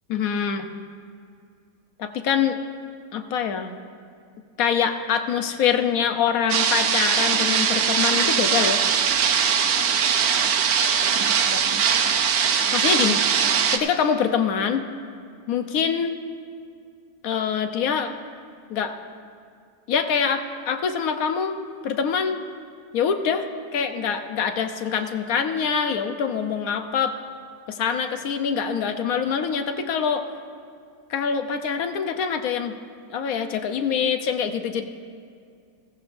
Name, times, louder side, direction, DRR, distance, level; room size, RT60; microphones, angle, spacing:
voice 1, 0.1-0.7 2.0-2.6 3.1-3.7 4.6-8.8 11.5-11.6 12.7-13.2 13.7-14.8 15.5-16.2 17.2-18.1 18.7-18.9 19.9-21.6 21.8-22.4 22.9-23.5 23.7-27.1 27.7-30.3 31.1-32.8 33.1-34.8, left 7 dB, 65° left, 8 dB, 1.1 m, -24 dB
sound 1, 6.5-13.8, right 7 dB, 75° right, 1.4 m, -21 dB
16.0 x 14.5 x 2.6 m, 2.3 s
omnidirectional pair, 1.8 m